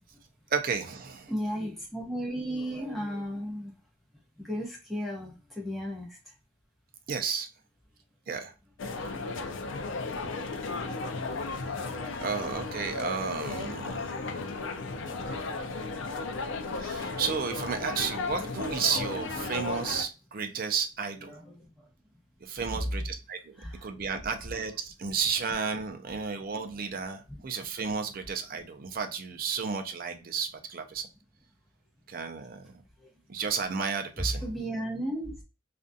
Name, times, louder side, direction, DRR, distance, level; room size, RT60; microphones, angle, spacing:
voice 1, 0.5-1.3 7.1-7.5 8.3-8.5 11.7-11.8 12.2-14.4 16.7-21.3 22.4-23.5 23.8-31.1 32.1-32.7 33.3-34.4, right 6 dB, 45° right, 6 dB, 0.4 m, -32 dB
voice 2, 1.3-3.7 4.4-6.3 20.5-20.7 21.2-21.9 22.7-23.1 23.6-23.9 24.3-24.4 27.3-27.5 28.5-28.6 33.0-33.1 34.2-35.4, equal, ahead, -3 dB, 0.8 m, -35 dB
sound 1, 8.8-20.0, left 3 dB, 65° left, 0.4 m, -35 dB
2.5 x 2.3 x 2.5 m, 0.32 s
head